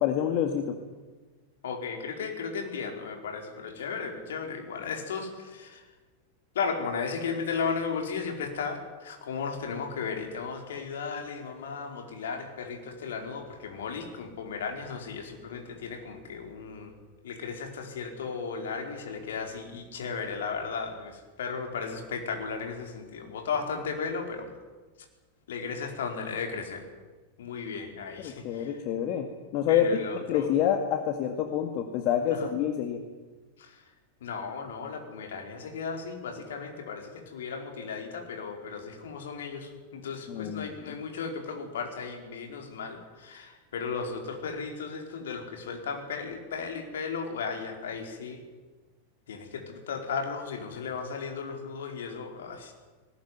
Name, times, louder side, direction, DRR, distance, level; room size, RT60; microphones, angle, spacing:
voice 1, 0.0-0.7 28.2-29.8 30.1-33.0 40.3-41.0, left 10 dB, 40° left, 5 dB, 2.1 m, -27 dB
voice 2, 1.6-5.8 6.5-16.9 17.2-24.5 25.5-26.8 27.4-28.7 29.7-30.5 32.3-32.5 33.6-33.8 34.2-48.4 49.3-52.7, left 5 dB, 60° left, 3 dB, 4.6 m, -35 dB
20.0 x 19.0 x 9.5 m, 1.3 s
figure-of-eight pair, 90°, 0 cm